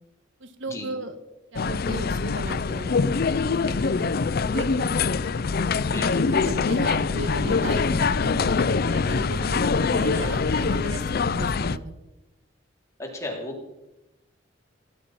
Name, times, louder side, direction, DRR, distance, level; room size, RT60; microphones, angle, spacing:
voice 1, 0.4-1.2 1.5-3.0 3.4-4.1 4.5-4.9 6.2-12.0, right 2 dB, 65° right, 10 dB, 1.4 m, -36 dB
sound 1, 1.6-11.8, left 4 dB, 50° left, 0.5 m, -24 dB
voice 2, 5.9-6.3 13.0-13.7, left 1 dB, 15° left, 0 dB, 3.7 m, -33 dB
18.5 x 11.0 x 5.9 m, 0.98 s
head